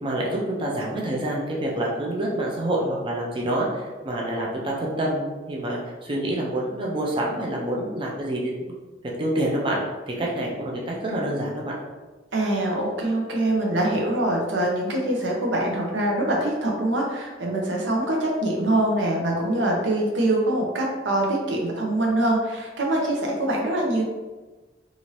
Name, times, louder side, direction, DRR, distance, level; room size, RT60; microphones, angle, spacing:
voice 1, 0.0-8.8 9.2-9.8 10.1-11.8, right 1 dB, 30° right, -3 dB, 0.5 m, -27 dB
voice 2, 12.3-24.0, right 1 dB, 85° right, -1 dB, 0.7 m, -24 dB
2.8 x 2.5 x 3.1 m, 1.2 s
head